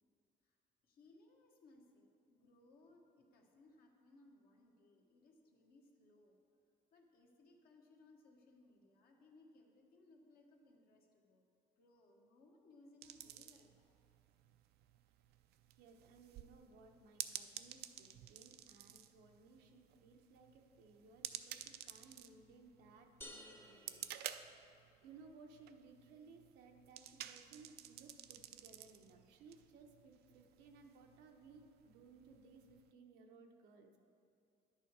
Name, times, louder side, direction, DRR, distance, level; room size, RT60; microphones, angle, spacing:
voice 1, 0.8-6.4 6.9-11.5 11.8-14.0, left 2 dB, 65° left, 0 dB, 1.5 m, -66 dB
sound 1, 13.0-32.9, right 12 dB, 70° right, 0.4 m, -53 dB
voice 2, 15.8-24.3 25.0-34.0, right 4 dB, 90° right, 3 dB, 0.9 m, -61 dB
sound 2, 23.2-25.1, left 1 dB, 15° left, 0.8 m, -56 dB
10.5 x 6.7 x 4.7 m, 2.6 s
cardioid pair, 110°, 17 cm